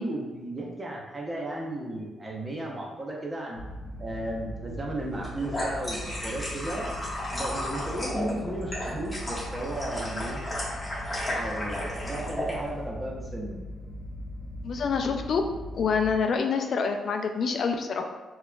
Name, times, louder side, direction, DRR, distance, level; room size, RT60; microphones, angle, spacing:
voice 1, 0.0-3.6 4.0-6.9 7.3-10.4 11.3-13.6, right 1 dB, 25° right, -2 dB, 0.8 m, -34 dB
sound 1, 3.5-16.2, equal, 70° right, 1.0 m, -40 dB
sound 2, 5.1-12.5, left 1 dB, 20° left, 1.4 m, -34 dB
voice 2, 14.6-15.4 15.7-18.1, left 5 dB, 60° left, 5 dB, 0.3 m, -26 dB
3.9 x 3.0 x 2.3 m, 1.3 s
cardioid pair, 85°, 0 cm